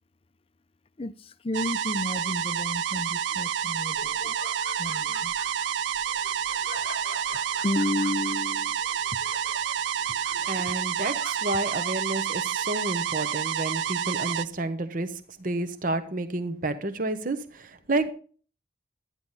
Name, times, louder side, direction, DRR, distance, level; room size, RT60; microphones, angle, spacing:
voice 1, 1.0-4.4 4.8-5.3 7.6-8.8, left 2 dB, 30° left, 0.5 m, -31 dB
sound 1, 1.5-14.4, right 9 dB, 75° right, 0.4 m, -29 dB
Laughter, 3.2-13.2, left 4 dB, 50° left, 0.9 m, -46 dB
voice 2, 10.3-18.1, right 2 dB, 50° right, 0.9 m, -30 dB
12.5 x 9.8 x 4.1 m
head